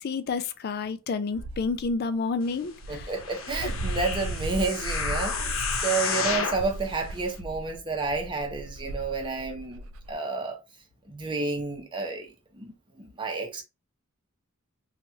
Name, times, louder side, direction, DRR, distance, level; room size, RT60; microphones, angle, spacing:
voice 1, 0.0-3.1, left 4 dB, 50° left, 0.4 m, -30 dB
Dog, 1.3-1.9 2.5-2.6 2.8-10.1, right 2 dB, 80° right, 0.4 m, -36 dB
voice 2, 2.9-9.8 10.1-10.6 11.1-12.3 12.6-13.6, right 3 dB, 25° right, 0.8 m, -30 dB
sound 1, 3.1-6.7 7.3-7.4, left 5 dB, 80° left, 0.8 m, -31 dB
3.1 x 2.4 x 2.7 m
head